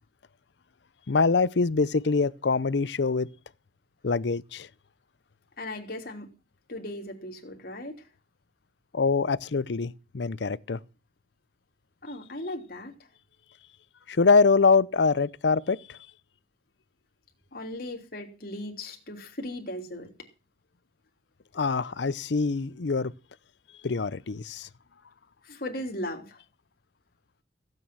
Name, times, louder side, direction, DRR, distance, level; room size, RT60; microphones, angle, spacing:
voice 1, 1.1-3.3 4.0-4.7 8.9-10.8 14.1-16.0 21.5-23.1 23.8-24.7, left 4 dB, 70° left, 0.6 m, -24 dB
voice 2, 5.6-6.3 6.7-8.1 12.0-12.9 17.5-20.1 25.4-26.4, left 1 dB, 55° left, 3.2 m, -37 dB
16.0 x 8.9 x 6.1 m
head